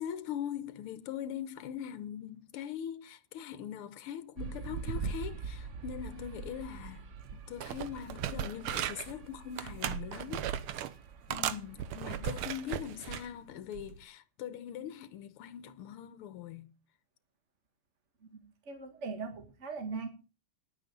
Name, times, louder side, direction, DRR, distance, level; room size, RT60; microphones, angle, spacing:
voice 1, 0.0-10.5 11.3-16.7, left 9 dB, 85° left, 1.8 m, -41 dB
sound 1, 4.4-12.4, right 5 dB, 60° right, 0.8 m, -43 dB
sound 2, 7.2-7.3 7.6-9.1 9.6-10.9 11.3-13.3 13.7-14.0, right 10 dB, 90° right, 1.7 m, -37 dB
voice 2, 18.7-20.1, right 4 dB, 35° right, 1.8 m, -39 dB
10.5 x 9.5 x 5.3 m
omnidirectional pair, 2.3 m